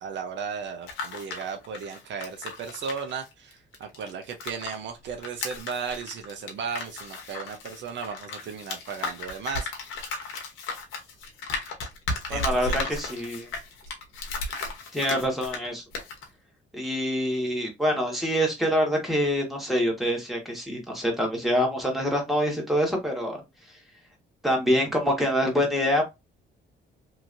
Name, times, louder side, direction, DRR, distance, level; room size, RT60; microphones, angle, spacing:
voice 1, 0.0-9.7 12.3-12.9, right 6 dB, 65° right, 0.6 m, -35 dB
sound 1, 0.7-4.8 5.1-15.7 15.9-16.2, left 3 dB, 90° left, 0.9 m, -35 dB
voice 2, 12.3-13.5 14.9-15.8 16.7-23.4 24.4-26.1, equal, ahead, 1.4 m, -25 dB
3.0 x 2.7 x 2.5 m
cardioid pair, 90°, 20 cm